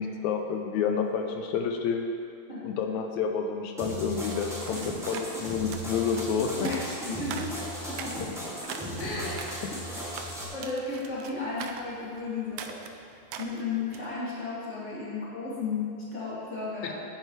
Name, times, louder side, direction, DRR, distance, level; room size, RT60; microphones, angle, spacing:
voice 1, 0.0-2.1 2.6-6.7 16.8-16.9, left 6 dB, 80° left, 3 dB, 2.0 m, -29 dB
sound 1, 3.8-10.4, equal, ahead, 1.9 m, -36 dB
sound 2, 3.9-14.1, right 7 dB, 85° right, 2.1 m, -43 dB
voice 2, 6.5-8.3 9.0-9.5 10.5-12.8 13.4-16.9, left 3 dB, 25° left, -8 dB, 2.9 m, -34 dB
16.0 x 9.2 x 3.3 m, 2.4 s
omnidirectional pair, 3.3 m